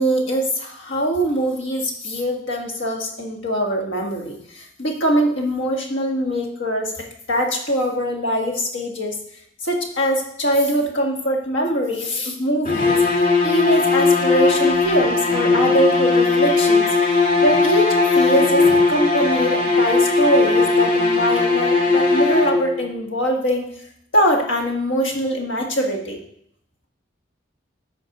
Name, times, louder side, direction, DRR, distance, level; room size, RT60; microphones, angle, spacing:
voice 1, 0.0-9.2 9.6-13.0 13.4-16.9 17.4-23.7 24.1-26.2, equal, 70° left, 1 dB, 1.7 m, -22 dB
sound 1, 12.6-22.9, left 3 dB, 40° left, 1.6 m, -18 dB
8.4 x 5.3 x 5.2 m, 0.69 s
head